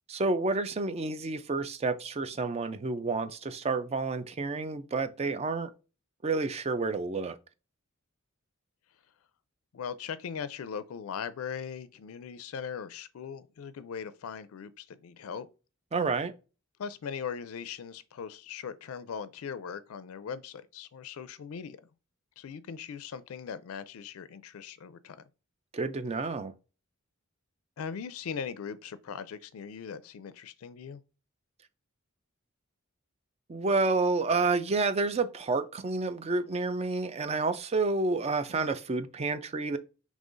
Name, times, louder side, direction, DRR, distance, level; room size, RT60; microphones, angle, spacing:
voice 1, 0.1-5.7 6.2-7.4 15.9-16.3 25.7-26.5 33.5-39.8, right 3 dB, 30° right, 0.4 m, -29 dB
voice 2, 9.7-15.5 16.8-21.8 22.4-25.2 27.8-31.0, left 6 dB, 80° left, 0.4 m, -39 dB
5.4 x 3.1 x 2.5 m
head